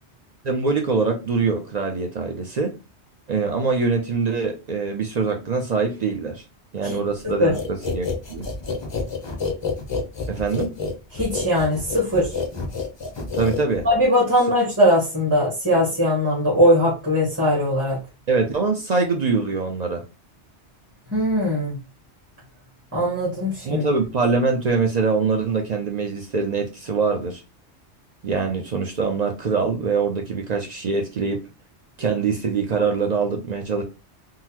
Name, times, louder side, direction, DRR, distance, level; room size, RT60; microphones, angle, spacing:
voice 1, 0.4-2.7 3.3-6.4 6.7-8.5 10.3-10.7 13.3-13.9 18.3-20.0 23.7-27.4 28.2-31.4 32.0-33.8, right 4 dB, 55° right, 0.4 m, -23 dB
sound 1, 7.5-14.0, left 4 dB, 35° left, 0.4 m, -29 dB
voice 2, 11.1-12.4 13.8-18.0 21.1-21.8 22.9-23.9, equal, 15° right, 1.1 m, -20 dB
3.8 x 2.0 x 2.8 m
omnidirectional pair, 1.2 m